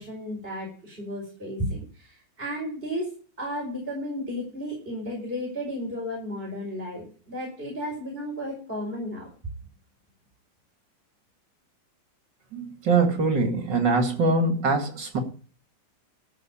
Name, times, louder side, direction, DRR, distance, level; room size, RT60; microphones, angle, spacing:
voice 1, 0.0-3.1 3.4-9.3, equal, 30° right, -3 dB, 5.0 m, -33 dB
voice 2, 12.5-15.2, right 3 dB, 70° right, 5 dB, 2.9 m, -23 dB
13.5 x 6.4 x 8.8 m, 0.40 s
omnidirectional pair, 2.0 m